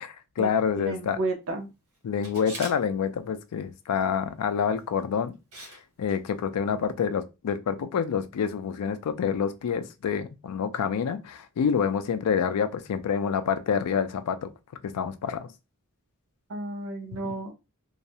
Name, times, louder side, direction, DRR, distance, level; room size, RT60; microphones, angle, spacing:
voice 1, 0.0-1.2 2.0-5.3 6.0-14.5 14.8-15.5 17.2-17.3, left 7 dB, 85° left, 0.4 m, -27 dB
voice 2, 0.8-1.7 16.5-17.5, right 2 dB, 60° right, 0.5 m, -32 dB
Camera, 2.2-2.8 4.8-5.0 5.5-5.8 6.1-6.2, right 2 dB, 80° right, 1.1 m, -41 dB
2.3 x 2.0 x 2.7 m
head